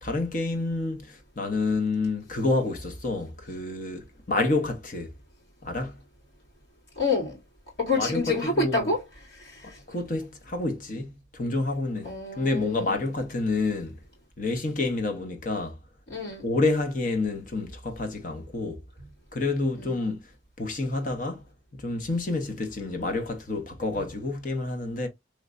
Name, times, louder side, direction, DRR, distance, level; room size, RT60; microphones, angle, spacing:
voice 1, 0.0-5.1 5.6-6.0 8.0-8.9 9.6-14.0 14.4-15.8 16.4-18.8 19.3-20.3 20.6-21.5 21.7-25.1, left 2 dB, 45° left, 0.8 m, -29 dB
voice 2, 7.0-7.4 7.8-9.0 9.3-9.8 12.0-13.0 16.1-16.5 19.8-20.0, left 3 dB, 70° left, 2.3 m, -28 dB
3.3 x 2.9 x 2.5 m
head